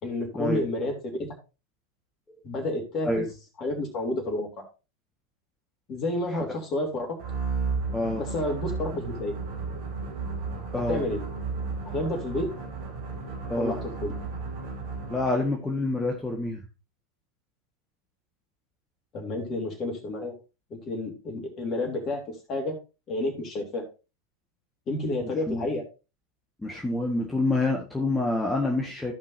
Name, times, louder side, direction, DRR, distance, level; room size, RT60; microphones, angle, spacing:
voice 1, 0.0-1.3 2.4-3.1 3.6-4.5 5.9-7.1 8.2-9.4 10.9-11.2 11.8-12.5 13.6-14.1 19.1-20.3 20.7-22.7 23.1-23.8 24.9-25.8, left 1 dB, 35° left, 3 dB, 3.2 m, -30 dB
sound 1, 7.2-15.4, right 4 dB, 55° right, 2.3 m, -33 dB
voice 2, 7.9-8.2 10.7-11.0 13.5-13.8 15.1-16.6 25.2-25.7 26.6-29.1, left 2 dB, 5° left, -1 dB, 1.5 m, -27 dB
15.0 x 5.4 x 2.7 m, 0.30 s
figure-of-eight pair, 85°, 0 cm